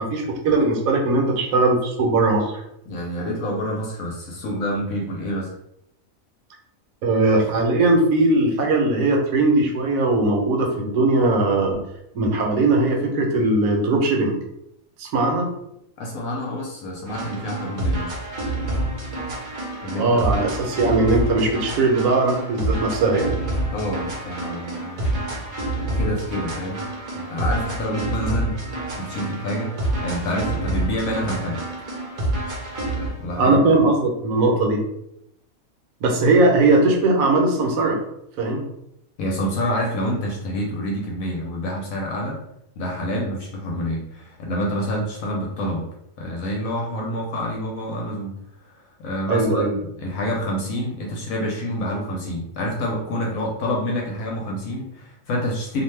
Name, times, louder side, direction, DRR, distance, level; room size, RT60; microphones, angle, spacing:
voice 1, 0.0-2.6 7.0-11.8 12.1-14.4 15.0-15.6 20.0-23.4 33.4-34.8 36.0-38.0 38.4-38.6 49.3-49.7, right 2 dB, 75° right, 0 dB, 1.1 m, -19 dB
voice 2, 2.9-5.5 16.0-18.1 19.8-20.4 23.7-25.4 26.0-26.8 27.1-28.6 29.0-29.7 30.0-31.6 33.2-33.6 39.2-42.4 42.8-45.9 46.2-48.3 48.6-55.8, equal, 75° left, -1 dB, 1.0 m, -27 dB
sound 1, 17.1-33.2, right 1 dB, 45° right, 0.7 m, -28 dB
2.6 x 2.2 x 3.1 m, 0.78 s
omnidirectional pair, 1.5 m